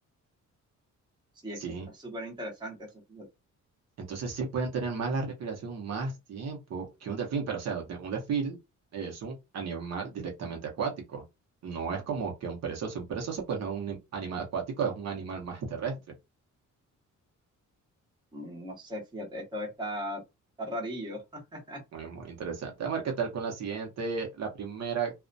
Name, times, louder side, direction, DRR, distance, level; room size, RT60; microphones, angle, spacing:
voice 1, 1.9-3.3 18.3-20.2 20.6-21.8, equal, 15° right, 0.8 m, -38 dB
voice 2, 4.0-8.6 8.9-11.2 11.6-15.9 21.9-25.1, right 5 dB, 55° right, 0.8 m, -33 dB
2.4 x 2.1 x 2.5 m
cardioid pair, 155°, 31 cm